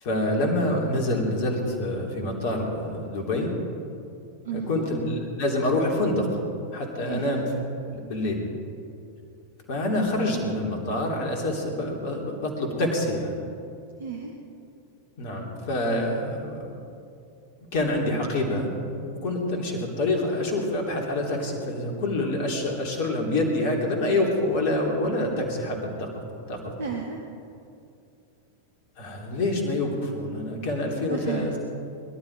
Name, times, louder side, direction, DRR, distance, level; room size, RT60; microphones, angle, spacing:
voice 1, 0.0-3.5 4.5-6.3 6.7-7.4 7.9-8.4 9.7-13.4 15.2-16.7 17.7-18.7 19.0-26.1 26.5-26.9 29.0-31.5, left 1 dB, 45° left, 1 dB, 3.3 m, -26 dB
voice 2, 4.4-4.9 7.1-7.4 14.0-14.3 26.8-27.2 31.1-31.6, right 6 dB, 65° right, 2 dB, 1.2 m, -32 dB
21.5 x 12.5 x 4.8 m, 2.6 s
figure-of-eight pair, 90°, 0 cm